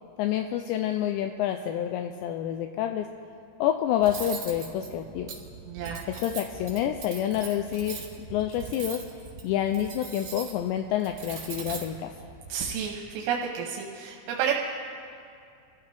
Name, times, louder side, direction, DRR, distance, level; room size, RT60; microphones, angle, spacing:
voice 1, 0.2-3.1 3.6-5.3 6.1-9.0 9.4-12.1, left 11 dB, 90° left, 6 dB, 2.5 m, -28 dB
Cutlery silverware, 4.0-12.7, right 5 dB, 55° right, 4.7 m, -41 dB
voice 2, 5.7-6.1 12.5-14.5, right 8 dB, 90° right, 0 dB, 3.6 m, -30 dB
27.0 x 14.0 x 3.4 m, 2.4 s
omnidirectional pair, 5.6 m